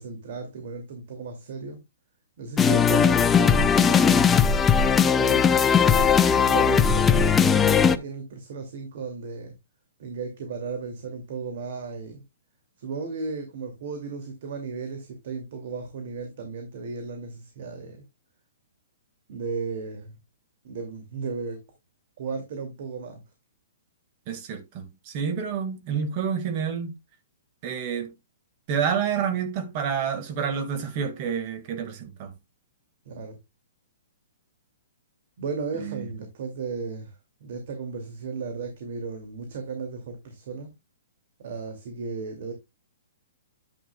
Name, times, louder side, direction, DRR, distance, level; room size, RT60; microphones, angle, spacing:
voice 1, 0.0-1.8 2.4-4.5 5.1-5.5 6.4-9.6 10.0-12.2 12.8-18.0 19.3-20.2 20.6-21.6 22.2-23.2 33.1-33.4 35.4-37.1 37.4-40.7 41.4-42.5, right 4 dB, 55° right, 2.4 m, -35 dB
sound 1, 2.6-8.0, left 6 dB, 10° left, 0.5 m, -19 dB
voice 2, 24.3-26.9 27.6-28.1 28.7-32.3 35.8-36.1, right 7 dB, 35° right, 1.8 m, -29 dB
9.8 x 8.5 x 2.3 m
hypercardioid pair, 150°, 0 cm